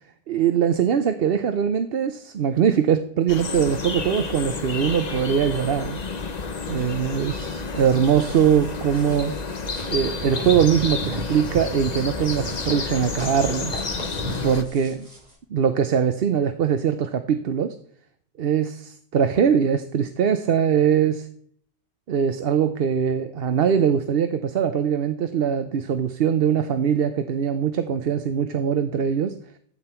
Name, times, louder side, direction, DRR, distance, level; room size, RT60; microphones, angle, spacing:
voice 1, 0.3-6.0 6.7-9.4 9.9-13.7 14.4-15.1 15.5-17.8 18.4-21.3 22.1-29.4, right 8 dB, 65° right, 9 dB, 0.9 m, -22 dB
sound 1, 3.3-14.6, left 4 dB, 45° left, 1.0 m, -30 dB
sound 2, 7.7-15.3, equal, 40° right, 3.0 m, -37 dB
15.0 x 8.7 x 4.4 m, 0.63 s
omnidirectional pair, 1.1 m